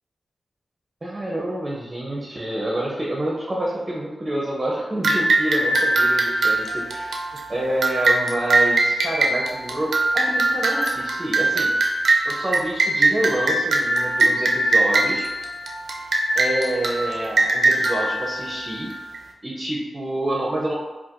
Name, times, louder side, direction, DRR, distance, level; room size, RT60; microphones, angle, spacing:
voice 1, 1.0-7.2 7.5-11.7 12.2-15.3 16.3-18.9 19.4-20.7, right 1 dB, 25° right, -3 dB, 0.5 m, -27 dB
sound 1, 5.0-19.2, right 2 dB, 85° right, 0.4 m, -21 dB
4.3 x 2.3 x 2.5 m, 1.2 s
wide cardioid pair, 115°, 0 cm